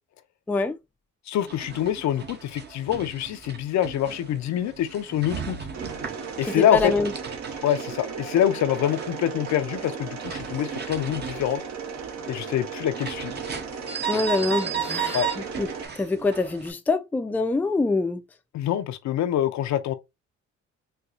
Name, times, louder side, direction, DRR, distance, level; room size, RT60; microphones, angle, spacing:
voice 1, 1.3-5.6 6.4-6.9 7.6-11.6 12.3-13.3 15.1-15.3 18.5-19.9, left 11 dB, 65° left, 0.5 m, -25 dB
sound 1, 1.4-16.7, right 7 dB, 35° right, 0.7 m, -36 dB
Mechanisms, 5.7-15.9, right 6 dB, 65° right, 0.8 m, -36 dB
voice 2, 6.6-7.1 14.1-15.2 15.6-15.7 16.0-18.2, left 3 dB, 5° left, 0.3 m, -24 dB
4.3 x 2.3 x 2.4 m
cardioid pair, 90°, 30 cm